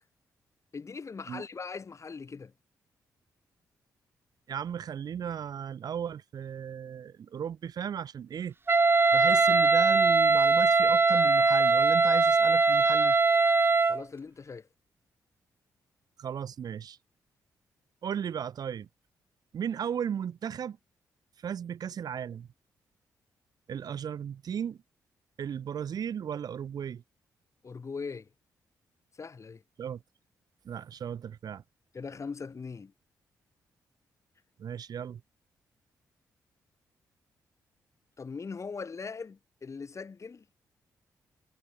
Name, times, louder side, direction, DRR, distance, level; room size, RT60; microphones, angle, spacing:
voice 1, 0.7-2.5 13.8-14.7 27.6-28.3 29.2-29.6 31.9-32.9 38.2-40.4, left 5 dB, 45° left, 6.7 m, -40 dB
voice 2, 4.5-8.5 9.1-13.2 16.2-17.0 18.0-18.9 19.5-20.8 21.4-22.5 23.7-24.8 25.4-27.0 29.8-30.0 30.6-31.6 34.6-35.2, right 8 dB, 65° right, 3.0 m, -35 dB
Wind instrument woodwind instrument, 8.7-14.0, right 3 dB, 30° right, 2.7 m, -22 dB
supercardioid pair, 60°, 7 cm